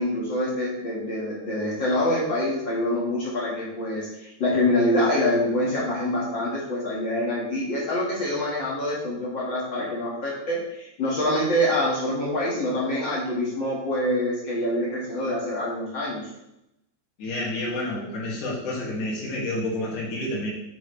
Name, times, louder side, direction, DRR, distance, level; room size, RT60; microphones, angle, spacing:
voice 1, 0.0-16.2, left 1 dB, 40° left, -5 dB, 2.0 m, -25 dB
voice 2, 17.2-20.5, left 1 dB, 65° left, -5 dB, 3.6 m, -29 dB
7.7 x 7.1 x 3.3 m, 0.85 s
omnidirectional pair, 4.0 m